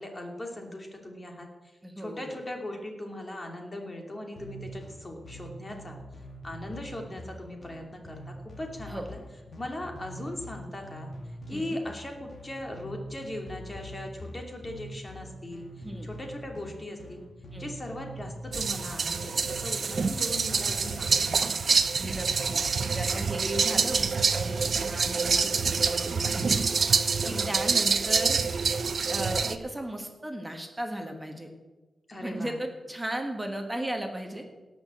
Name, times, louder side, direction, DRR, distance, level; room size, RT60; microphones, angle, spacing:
voice 1, 0.0-1.5 2.0-6.0 6.4-9.2 9.6-11.1 11.5-15.6 16.0-17.2 17.6-21.8 27.2-27.5 32.1-32.6, left 1 dB, 25° left, 2 dB, 2.6 m, -39 dB
voice 2, 1.8-2.4 8.9-9.1 11.5-11.8 15.8-16.1 17.5-17.7 22.0-26.6 27.3-28.4 29.1-31.5 32.2-34.4, right 1 dB, 10° right, 3 dB, 1.7 m, -36 dB
sound 1, 4.4-23.2, equal, 50° left, 2.3 m, -44 dB
sound 2, 18.5-29.6, right 5 dB, 55° right, 0.7 m, -26 dB
18.0 x 6.1 x 7.6 m, 1.2 s
wide cardioid pair, 100°, 0 cm